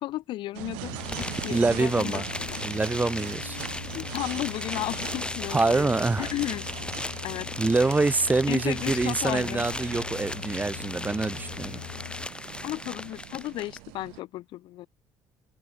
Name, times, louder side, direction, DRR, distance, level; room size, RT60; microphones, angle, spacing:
voice 1, 0.0-2.7 3.9-6.6 7.2-7.5 8.5-9.7 12.6-14.9, left 16 dB, 65° left, 0.6 m, -34 dB
sound 1, 0.5-14.2, right 38 dB, 80° right, 2.0 m, -42 dB
sound 2, 0.8-12.3, left 26 dB, 85° left, 1.4 m, -42 dB
sound 3, 1.0-13.8, left 2 dB, 10° left, 2.1 m, -37 dB
voice 2, 1.5-2.3 2.6-3.6 5.5-6.3 7.6-11.8, right 3 dB, 20° right, 0.9 m, -25 dB
supercardioid pair, 70°, 9 cm